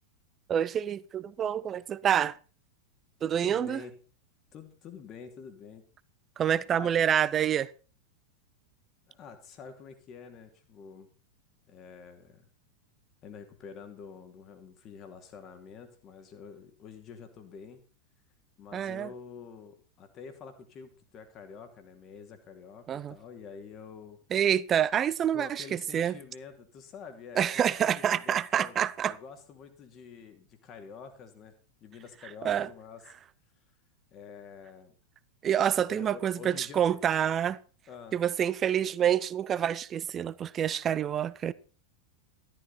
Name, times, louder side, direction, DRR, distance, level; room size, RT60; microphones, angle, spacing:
voice 1, 0.5-2.4 3.2-3.8 6.4-7.7 18.7-19.1 22.9-23.1 24.3-26.2 27.4-29.2 32.4-32.7 35.4-37.6 38.1-41.5, right 9 dB, 25° right, 0.6 m, -27 dB
voice 2, 3.4-3.9 4.5-5.8 6.7-6.9 9.1-11.1 11.7-12.5 13.2-17.8 18.6-24.2 25.3-28.8 29.0-31.5 31.8-33.0 34.1-34.9 35.7-37.0 37.9-38.2, left 6 dB, 30° left, 2.8 m, -47 dB
14.0 x 12.5 x 4.2 m
figure-of-eight pair, 90°, 0 cm